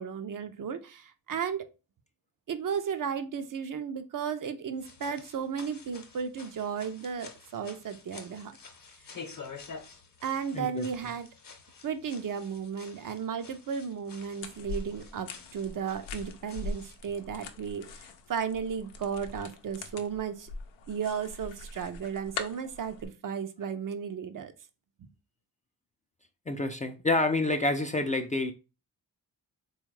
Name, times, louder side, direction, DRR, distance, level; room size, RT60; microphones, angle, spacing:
voice 1, 0.0-1.7 2.5-8.6 10.2-11.3 11.8-20.5 20.9-24.5 25.0-25.1, right 7 dB, 50° right, 0.5 m, -34 dB
sound 1, 4.7-17.0, left 5 dB, 50° left, 0.9 m, -49 dB
voice 2, 10.5-10.9 26.5-28.5, left 2 dB, 20° left, 0.4 m, -28 dB
sound 2, 14.4-23.1, left 3 dB, 85° left, 0.6 m, -42 dB
3.4 x 2.3 x 3.1 m
supercardioid pair, 45°, 44 cm